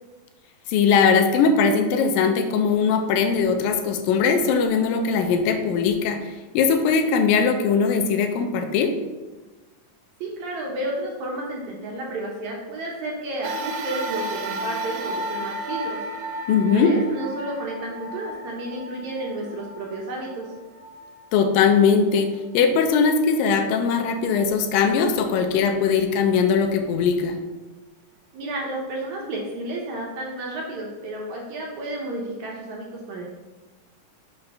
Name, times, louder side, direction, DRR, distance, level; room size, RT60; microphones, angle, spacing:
voice 1, 0.7-8.9 16.5-16.9 21.3-27.4, left 5 dB, 85° left, 6 dB, 2.4 m, -20 dB
voice 2, 10.2-16.0 16.7-20.5 28.3-33.2, right 1 dB, 70° right, -2 dB, 1.9 m, -32 dB
sound 1, 13.4-22.0 22.7-22.8 23.9-24.0, right 1 dB, 85° right, 2.5 m, -33 dB
5.8 x 4.2 x 5.3 m, 1.2 s
omnidirectional pair, 4.0 m